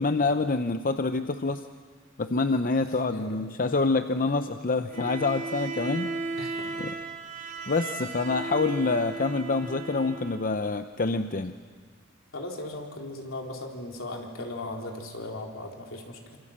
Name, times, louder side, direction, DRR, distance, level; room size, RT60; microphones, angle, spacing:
voice 1, 0.0-1.6 2.2-6.1 6.8-6.9 7.7-11.5, left 3 dB, 45° left, 8 dB, 0.7 m, -26 dB
voice 2, 3.1-3.4 6.4-6.9 12.3-16.4, left 2 dB, 75° left, 1 dB, 4.0 m, -38 dB
Bowed string instrument, 4.9-10.5, right 3 dB, 45° right, 3.8 m, -36 dB
27.5 x 26.5 x 7.5 m, 1.5 s
head